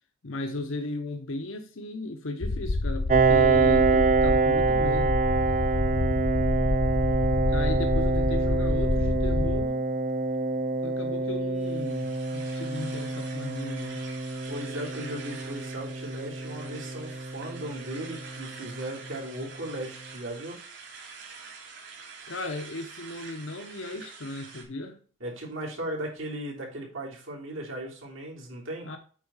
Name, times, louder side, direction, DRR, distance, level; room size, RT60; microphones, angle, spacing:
voice 1, 0.2-5.2 7.5-9.8 10.8-14.0 22.3-25.0 28.8-29.0, left 2 dB, 75° left, 0.9 m, -36 dB
sound 1, 2.4-9.6, left 2 dB, 45° left, 0.5 m, -28 dB
Piano, 3.1-18.4, right 4 dB, 35° right, 0.5 m, -26 dB
sound 2, 11.6-24.6, right 5 dB, 60° right, 2.9 m, -46 dB
voice 2, 14.5-20.6 25.2-28.9, right 1 dB, 80° right, 3.2 m, -37 dB
8.5 x 4.4 x 5.6 m
head